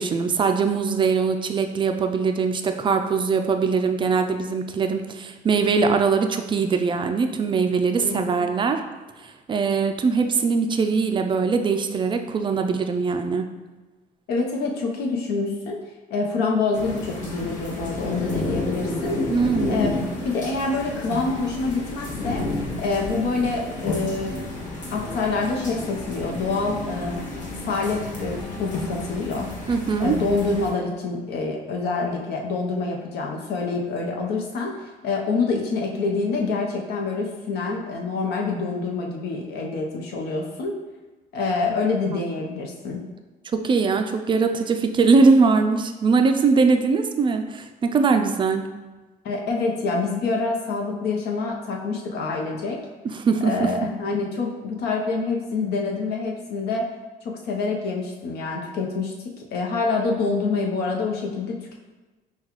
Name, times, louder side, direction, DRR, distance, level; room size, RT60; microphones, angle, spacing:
voice 1, 0.0-8.8 9.2-13.5 19.3-19.8 29.7-30.2 43.5-48.7 53.0-53.7, right 4 dB, 30° right, 6 dB, 0.3 m, -21 dB
voice 2, 8.0-8.5 14.3-15.8 16.1-19.2 19.7-19.9 20.2-22.5 22.8-24.5 24.9-27.2 27.6-29.5 30.0-34.7 35.0-40.7 41.3-43.0 49.2-52.8 53.4-56.8 57.4-61.7, left 3 dB, 75° left, 0 dB, 0.8 m, -26 dB
sound 1, 16.7-30.7, left 2 dB, 45° left, 1.2 m, -31 dB
sound 2, 23.7-30.3, equal, 20° left, 1.3 m, -40 dB
5.7 x 2.3 x 3.0 m, 1.2 s
cardioid pair, 110°, 17 cm